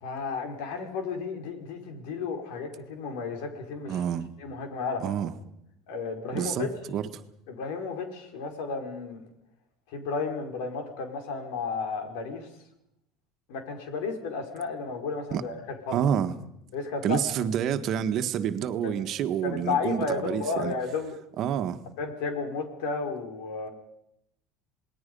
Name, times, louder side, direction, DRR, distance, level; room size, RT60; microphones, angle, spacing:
voice 1, 0.0-4.0 4.4-5.0 5.9-6.7 7.5-9.2 9.9-12.5 13.5-15.6 15.9-16.0 16.7-17.2 18.8-18.9 19.4-21.2 22.0-23.7, left 4 dB, 80° left, 4.9 m, -33 dB
voice 2, 3.9-4.3 5.0-5.3 6.3-7.2 15.3-15.4 15.9-16.3 17.0-20.7 21.4-21.8, right 9 dB, 50° right, 1.5 m, -28 dB
27.5 x 19.5 x 5.5 m
supercardioid pair, 110°, 0 cm